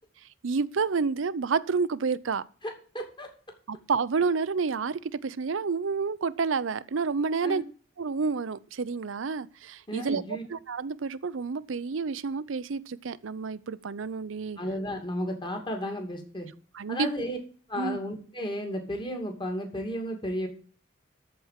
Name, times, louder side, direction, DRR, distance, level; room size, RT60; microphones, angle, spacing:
voice 1, 0.4-2.4 3.7-7.6 8.0-10.2 10.5-14.6 16.7-17.1 17.8-18.0, right 5 dB, 75° right, 0.6 m, -29 dB
voice 2, 2.9-3.3 7.4-7.6 9.9-10.4 14.6-16.5 16.9-17.4 17.7-20.5, equal, 25° left, 2.5 m, -33 dB
13.5 x 4.6 x 7.4 m
head